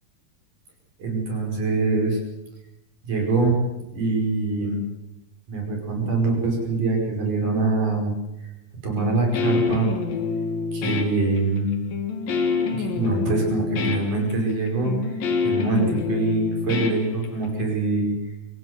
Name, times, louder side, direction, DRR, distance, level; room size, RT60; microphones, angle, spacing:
voice 1, 1.0-2.2 3.0-3.6 3.9-4.8 5.5-8.1 8.8-9.9 10.7-11.8 12.8-18.1, right 3 dB, 55° right, 1 dB, 6.7 m, -24 dB
Guitar, 9.0-17.6, left 5 dB, 65° left, 4.0 m, -26 dB
24.5 x 16.5 x 8.0 m, 0.91 s
omnidirectional pair, 4.5 m